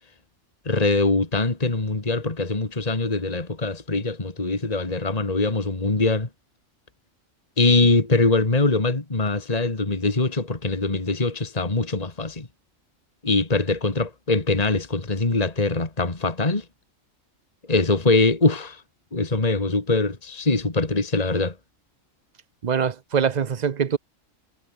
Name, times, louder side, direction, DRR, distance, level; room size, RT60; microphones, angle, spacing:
voice 1, 0.7-6.3 7.6-12.5 13.2-16.6 17.7-18.8 19.1-21.6, left 3 dB, 30° left, 2.4 m, -22 dB
voice 2, 22.6-24.0, right 7 dB, 40° right, 0.8 m, -23 dB
omnidirectional pair, 1.4 m